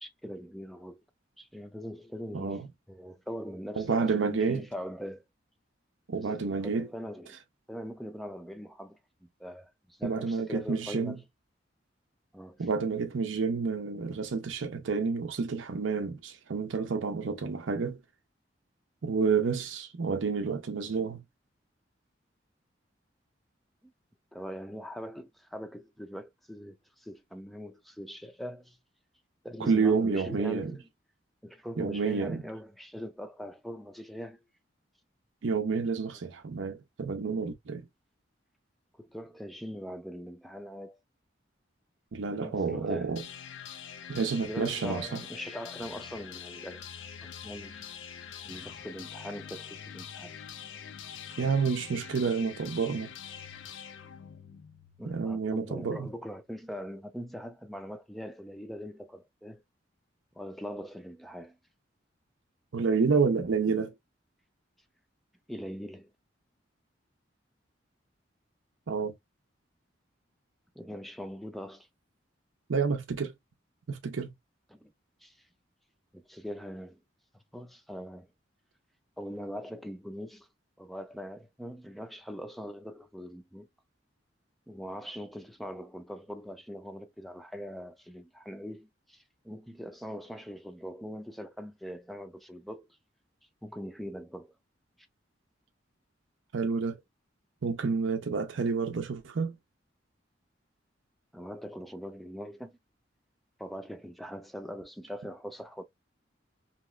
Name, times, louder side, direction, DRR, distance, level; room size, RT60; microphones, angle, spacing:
voice 1, 0.0-1.0 1.4-2.6 2.9-5.2 6.2-7.4 7.7-11.2 12.3-12.7 23.8-23.9 24.3-28.8 29.4-30.9 31.4-34.4 39.0-41.0 42.4-43.2 44.5-46.8 47.2-47.9 48.4-50.3 55.0-59.6 60.4-61.6 65.5-66.1 70.8-71.9 74.7-74.9 75.2-75.4 76.1-77.0 77.3-78.3 79.2-80.5 80.8-83.7 84.7-92.9 93.6-94.5 101.3-102.8 103.6-105.8, equal, ahead, 0.3 m, -42 dB
voice 2, 2.3-2.7 3.8-4.6 6.1-6.9 10.0-11.2 12.6-18.0 19.0-21.2 29.6-30.8 31.8-32.4 35.4-37.9 42.1-43.2 44.1-45.2 51.4-53.1 55.1-56.1 62.7-63.9 68.9-69.1 72.7-73.3 73.9-74.3 96.5-97.0 97.6-99.6, right 5 dB, 90° right, 0.6 m, -29 dB
sound 1, 43.2-55.1, left 8 dB, 90° left, 0.5 m, -44 dB
2.9 x 2.3 x 3.1 m
head